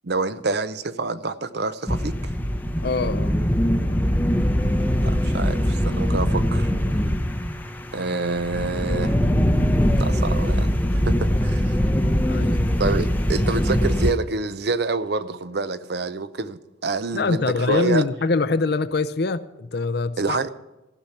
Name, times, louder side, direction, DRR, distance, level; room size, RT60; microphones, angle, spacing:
voice 1, 0.0-2.1 5.0-6.7 7.9-9.2 9.9-11.8 12.8-18.0 20.2-20.5, right 3 dB, 55° right, 0.6 m, -27 dB
sound 1, 1.9-14.1, equal, 10° left, 0.7 m, -22 dB
voice 2, 2.8-3.3 12.2-12.6 17.1-20.4, left 3 dB, 55° left, 0.5 m, -24 dB
14.5 x 5.8 x 8.3 m
head